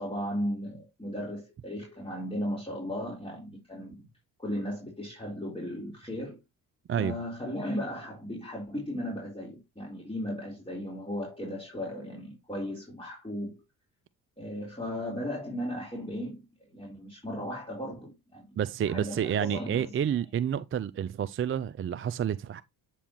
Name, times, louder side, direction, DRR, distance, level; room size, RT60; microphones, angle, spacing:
voice 1, 0.0-4.1 4.4-6.4 7.0-13.5 14.4-16.4 16.7-18.5 18.8-19.9, equal, 10° left, 4.0 m, -36 dB
voice 2, 18.6-22.6, right 9 dB, 25° right, 0.5 m, -29 dB
8.2 x 5.6 x 3.0 m
hypercardioid pair, 45°, 49 cm